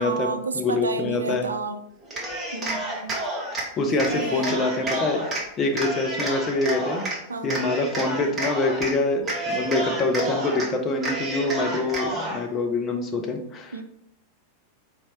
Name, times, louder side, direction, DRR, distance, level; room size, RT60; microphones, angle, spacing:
voice 1, 0.0-1.8 2.5-3.2 3.9-4.6 7.3-7.7 13.7-13.8, right 4 dB, 75° right, 8 dB, 0.3 m, -31 dB
voice 2, 0.5-1.5 3.8-5.2 5.6-7.1 7.4-13.7, left 2 dB, 25° left, 3 dB, 0.7 m, -25 dB
Cheering, 2.0-3.7 4.0-5.4 5.7-7.2 7.5-8.9 9.2-10.7 11.0-12.4, right 1 dB, 20° right, 1.1 m, -29 dB
4.3 x 2.8 x 3.1 m, 0.74 s
figure-of-eight pair, 90°, 0 cm